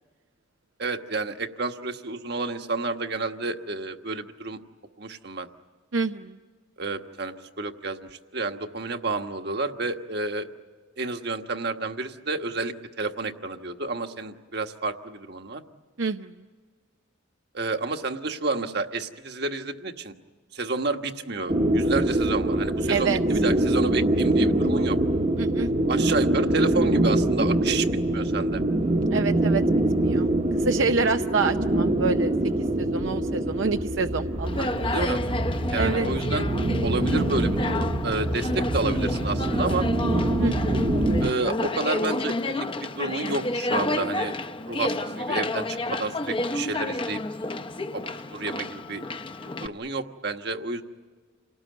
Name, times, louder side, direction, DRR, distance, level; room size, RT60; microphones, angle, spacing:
voice 1, 0.8-4.6 5.0-5.5 6.8-8.0 8.3-10.5 11.0-15.6 17.5-20.1 20.5-25.0 25.9-27.9 28.1-28.6 34.8-35.2 35.7-36.5 36.8-39.9 41.2-44.4 44.7-47.2 47.9-49.0 49.6-50.8, right 3 dB, 55° right, 6 dB, 1.4 m, -30 dB
voice 2, 5.9-6.4 16.0-16.3 22.9-23.2 25.4-25.7 29.1-29.6 30.0-30.3 30.6-32.3 32.8-34.9 35.8-36.1 40.4-40.9, right 4 dB, 80° right, 6 dB, 0.7 m, -27 dB
sound 1, 21.5-41.3, right 1 dB, 30° right, 1.0 m, -24 dB
Conversation, 34.4-49.7, left 2 dB, 25° left, 0.8 m, -30 dB
29.0 x 19.0 x 9.5 m, 1.5 s
head